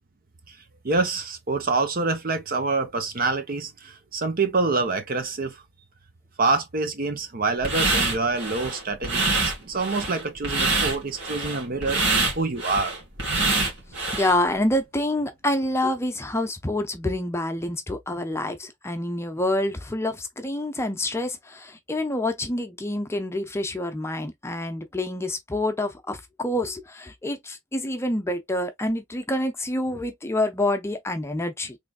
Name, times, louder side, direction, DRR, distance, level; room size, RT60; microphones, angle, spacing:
voice 1, 0.8-5.6 6.4-13.0, right 3 dB, 45° right, 0.8 m, -26 dB
sound 1, 7.6-14.4, right 3 dB, 65° right, 2.0 m, -25 dB
voice 2, 14.1-31.8, left 1 dB, 15° left, 0.6 m, -27 dB
3.9 x 3.3 x 2.3 m
head